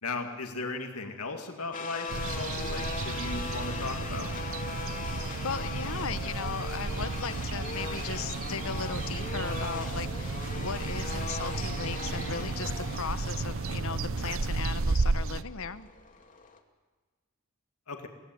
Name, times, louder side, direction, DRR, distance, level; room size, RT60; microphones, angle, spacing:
voice 1, 0.0-4.3 17.9-18.1, left 3 dB, 85° left, 4 dB, 2.2 m, -37 dB
sound 1, 1.7-16.6, left 4 dB, 40° left, 2.2 m, -40 dB
sound 2, 2.1-15.4, right 3 dB, 65° right, 0.8 m, -33 dB
voice 2, 5.4-15.9, left 5 dB, 65° left, 14 dB, 1.0 m, -37 dB
24.0 x 17.5 x 9.3 m, 1.3 s
head